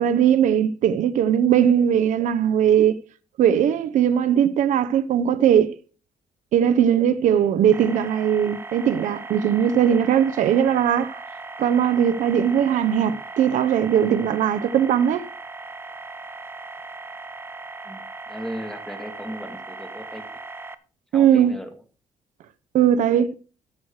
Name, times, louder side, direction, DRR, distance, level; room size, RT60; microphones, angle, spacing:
voice 1, 0.0-3.0 3.4-5.8 6.5-11.2 11.6-15.2 21.1-21.5 22.7-23.3, right 9 dB, 75° right, 0.7 m, -19 dB
sound 1, 7.7-20.8, right 3 dB, 15° right, 0.6 m, -38 dB
voice 2, 17.8-20.2 21.1-21.7, equal, 5° left, 2.0 m, -36 dB
13.5 x 6.5 x 4.7 m
cardioid pair, 125°, 13 cm